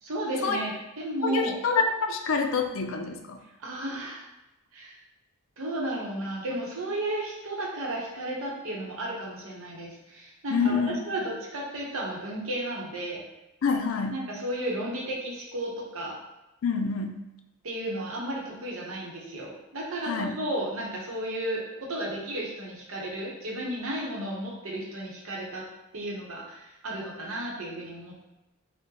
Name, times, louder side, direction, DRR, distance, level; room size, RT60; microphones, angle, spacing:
voice 1, 0.0-1.5 3.6-4.3 4.7-5.0 5.6-13.2 14.1-16.2 17.6-25.7 25.9-28.2, right 1 dB, 75° right, -2 dB, 0.8 m, -33 dB
voice 2, 1.2-3.4 10.5-11.0 13.6-14.2 16.6-17.2 20.0-20.4, left 5 dB, 65° left, 5 dB, 0.4 m, -27 dB
3.7 x 2.1 x 2.8 m, 0.96 s
head